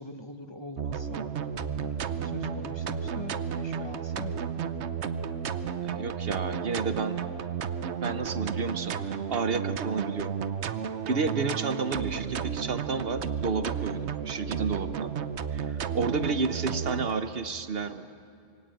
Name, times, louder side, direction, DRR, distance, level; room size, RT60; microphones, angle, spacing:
voice 1, 0.0-4.4, left 2 dB, 25° left, 5 dB, 1.4 m, -43 dB
sound 1, 0.8-17.1, right 7 dB, 85° right, 1.1 m, -33 dB
voice 2, 5.8-7.2 8.0-10.4 11.1-15.1 15.5-18.1, right 4 dB, 60° right, 10 dB, 1.1 m, -31 dB
25.5 x 23.5 x 9.1 m, 2.6 s
omnidirectional pair, 1.1 m